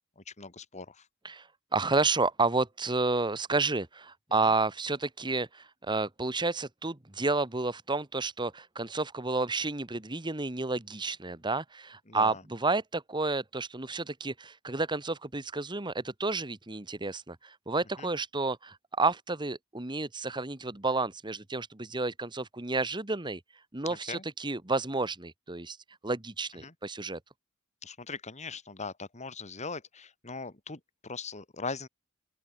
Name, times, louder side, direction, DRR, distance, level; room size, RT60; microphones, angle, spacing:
voice 1, 0.2-1.1 12.1-12.4 18.0-18.1 23.9-24.2 26.6-26.7 27.8-31.9, left 4 dB, 35° left, 2.8 m, -40 dB
voice 2, 1.2-23.4 23.7-25.8 26.0-27.2, right 3 dB, 20° right, 1.5 m, -31 dB
open air
head